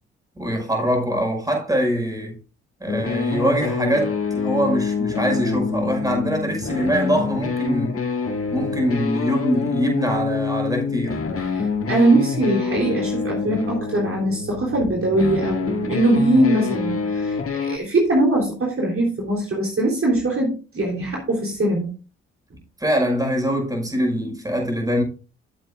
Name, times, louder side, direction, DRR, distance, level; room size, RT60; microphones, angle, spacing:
voice 1, 0.4-2.4 2.8-8.0 8.5-11.3 22.8-25.0, equal, 10° right, 5.7 m, -23 dB
sound 1, 2.9-17.8, left 5 dB, 40° left, 1.9 m, -26 dB
voice 2, 11.4-21.9, right 1 dB, 40° right, 3.6 m, -21 dB
15.0 x 7.7 x 2.5 m
hypercardioid pair, 45°, 34 cm